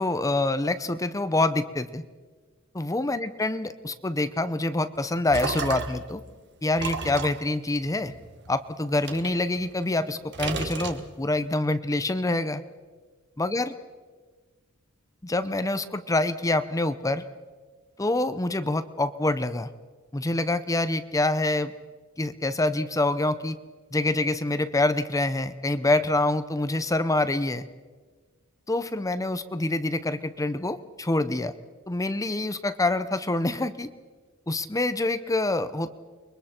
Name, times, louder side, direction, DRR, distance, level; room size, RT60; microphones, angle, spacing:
voice 1, 0.0-2.0 2.7-6.2 6.6-8.1 8.5-12.6 13.4-13.7 15.2-17.2 18.0-19.7 20.1-21.7 22.2-23.6 23.9-27.6 28.7-31.5 31.9-33.9 34.5-35.9, left 2 dB, 15° left, 12 dB, 0.7 m, -26 dB
sound 1, 5.0-6.1 6.8-8.5 9.0-10.0 10.3-11.4, right 4 dB, 50° right, 1.5 m, -34 dB
29.5 x 22.5 x 4.4 m, 1.4 s
head